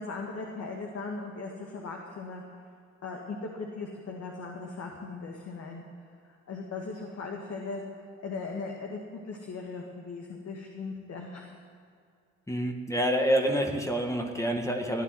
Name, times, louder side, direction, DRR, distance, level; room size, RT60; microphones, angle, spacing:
voice 1, 0.0-2.4 3.0-5.8 6.5-7.8 8.2-11.5, left 4 dB, 55° left, 0 dB, 2.1 m, -38 dB
voice 2, 12.5-15.0, equal, 10° left, 3 dB, 1.8 m, -27 dB
16.5 x 9.6 x 7.9 m, 2.3 s
supercardioid pair, 65°, 30 cm